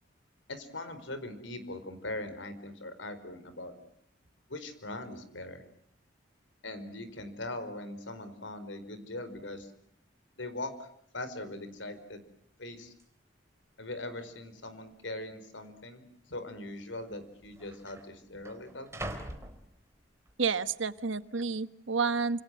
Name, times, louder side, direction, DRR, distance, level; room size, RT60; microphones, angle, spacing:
voice 1, 0.5-3.7 4.5-5.6 6.6-9.7 10.4-10.9 11.1-12.2 12.6-12.9 13.8-18.9, left 2 dB, 75° left, 11 dB, 4.7 m, -41 dB
sound 1, 11.9-12.3 13.0-13.1 13.8-14.4 14.6-14.8 15.6-15.8 16.8-16.9 17.1-20.3 20.8-21.2, right 1 dB, 15° right, 3.3 m, -45 dB
voice 2, 20.4-22.4, right 5 dB, 80° right, 13 dB, 1.3 m, -30 dB
28.5 x 27.0 x 7.7 m, 0.67 s
head